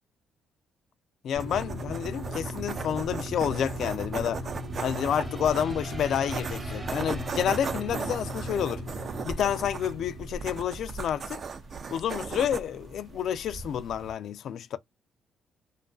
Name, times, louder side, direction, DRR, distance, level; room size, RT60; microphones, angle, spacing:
voice 1, 1.2-4.5 4.8-8.8 9.2-11.4 11.9-14.8, left 9 dB, 70° left, 0.3 m, -29 dB
sound 1, 1.4-14.1, right 5 dB, 50° right, 0.4 m, -38 dB
sound 2, 1.4-11.2, equal, 80° right, 0.9 m, -38 dB
sound 3, 4.5-9.2, right 2 dB, 25° right, 0.7 m, -46 dB
2.5 x 2.4 x 2.2 m
cardioid pair, 90°, 0 cm